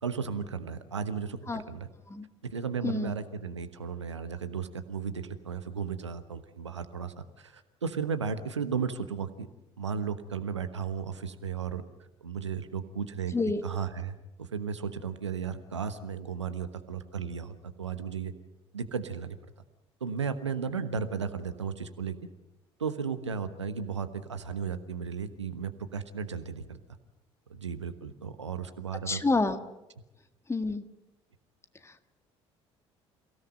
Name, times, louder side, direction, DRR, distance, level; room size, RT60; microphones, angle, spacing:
voice 1, 0.0-1.4 1.7-1.9 2.5-9.5 9.8-11.8 12.2-13.3 13.6-18.3 18.7-19.4 20.0-22.1 22.8-26.8 27.5-29.2, right 6 dB, 85° right, 11 dB, 1.2 m, -34 dB
voice 2, 29.1-29.6 30.5-30.8 31.8-32.1, left 3 dB, 20° left, 9 dB, 1.8 m, -28 dB
29.0 x 17.0 x 7.7 m, 0.97 s
figure-of-eight pair, 55°, 15 cm